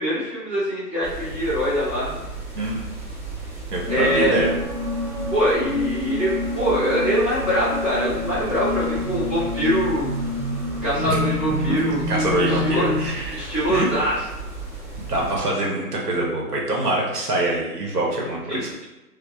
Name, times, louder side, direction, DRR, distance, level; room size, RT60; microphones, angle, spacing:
voice 1, 0.0-2.2 3.9-4.3 5.3-10.2 10.8-12.0 12.5-12.9 13.3-14.2 18.5-18.6, equal, 10° left, -14 dB, 0.7 m, -23 dB
sound 1, 1.0-15.4, right 2 dB, 45° right, 1.3 m, -35 dB
voice 2, 3.7-4.5 11.1-11.2 12.1-13.9 15.0-18.7, right 2 dB, 70° right, -3 dB, 0.9 m, -24 dB
sound 2, 3.8-13.1, left 2 dB, 30° right, 1.1 m, -28 dB
2.9 x 2.0 x 2.3 m, 1.1 s
figure-of-eight pair, 145°, 48 cm